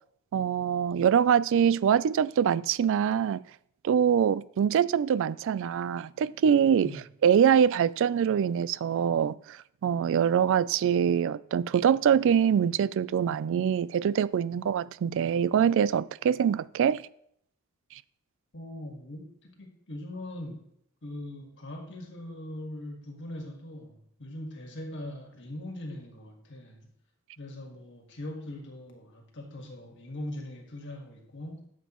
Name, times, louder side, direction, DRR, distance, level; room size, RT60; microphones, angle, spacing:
voice 1, 0.3-3.4 3.8-6.9 7.2-9.6 9.8-17.1, right 8 dB, 60° right, 0.3 m, -24 dB
voice 2, 18.5-20.7 21.0-26.9 27.4-31.7, left 1 dB, 60° left, 1.7 m, -41 dB
12.0 x 7.3 x 3.0 m
head